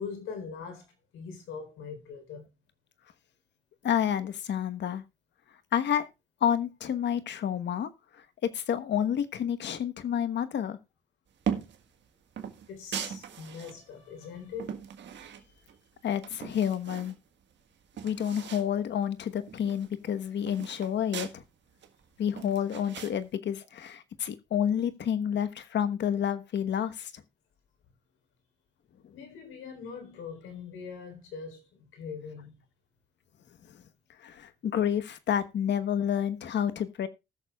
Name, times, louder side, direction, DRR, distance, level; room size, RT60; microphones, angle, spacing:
voice 1, 0.0-2.5 12.7-14.8 29.1-32.5, left 5 dB, 85° left, 4.0 m, -42 dB
voice 2, 3.8-5.0 5.7-6.1 6.4-7.9 8.5-10.8 16.0-17.1 18.0-21.4 22.2-27.1 34.2-37.1, left 9 dB, 60° left, 1.2 m, -29 dB
sound 1, 11.4-11.8 12.4-13.8 14.2-15.8 16.1-17.2 17.5-17.6 17.8-18.7 19.0-19.1 19.4-21.4 21.8-23.1, right 8 dB, 65° right, 1.6 m, -38 dB
19.5 x 6.7 x 2.4 m
cardioid pair, 90°, 20 cm